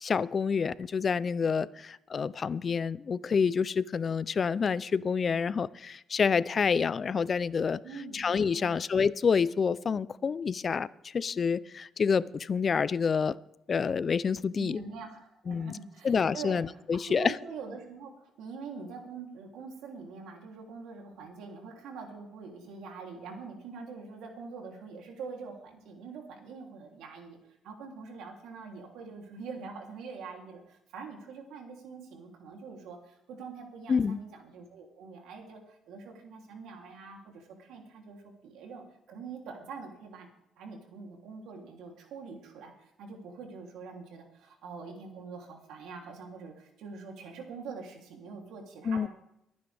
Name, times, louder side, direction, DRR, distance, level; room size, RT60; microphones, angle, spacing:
voice 1, 0.0-7.8 8.1-10.9 11.1-13.3 13.7-14.8 15.5-15.8 16.0-17.3 33.9-34.2 48.9-49.1, left 6 dB, 45° left, 19 dB, 0.4 m, -28 dB
voice 2, 7.8-8.8 14.6-16.8 17.1-27.4 27.6-40.3 40.6-49.1, right 4 dB, 90° right, 2 dB, 3.0 m, -44 dB
23.5 x 9.6 x 3.4 m, 0.83 s
cardioid pair, 90°, 0 cm